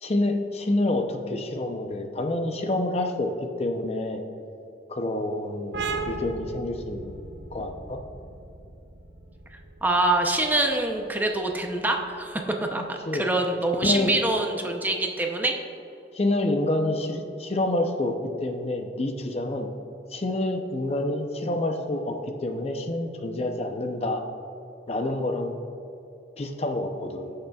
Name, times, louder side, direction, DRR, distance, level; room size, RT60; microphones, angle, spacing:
voice 1, 0.0-4.2 4.9-8.0 13.1-13.2 13.8-14.1 16.1-18.2 18.4-19.7 20.1-24.2 24.9-25.6 26.4-27.3, left 1 dB, 35° left, 4 dB, 0.6 m, -28 dB
sound 1, 5.7-13.0, right 3 dB, 80° right, 0.8 m, -38 dB
voice 2, 9.8-12.4 12.7-15.6, right 2 dB, 10° right, 2 dB, 0.6 m, -25 dB
15.5 x 6.6 x 2.4 m, 2.8 s
head